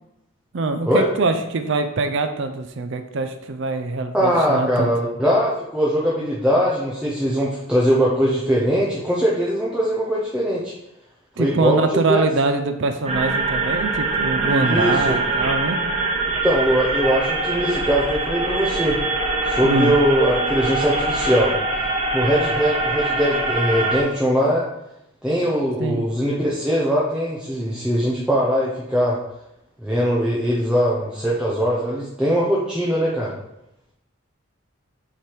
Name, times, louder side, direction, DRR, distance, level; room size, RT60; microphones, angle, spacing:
voice 1, 0.5-4.9 11.4-15.8 19.6-19.9 25.8-26.0, right 3 dB, 55° right, 7 dB, 0.5 m, -23 dB
voice 2, 4.1-10.7 11.4-12.2 14.5-15.1 16.3-19.0 19.4-21.5 22.1-24.7 25.2-29.2 29.8-33.3, equal, 5° right, -6 dB, 0.7 m, -21 dB
sound 1, 13.1-24.0, right 3 dB, 30° right, 0.9 m, -23 dB
7.3 x 3.4 x 4.5 m, 0.85 s
head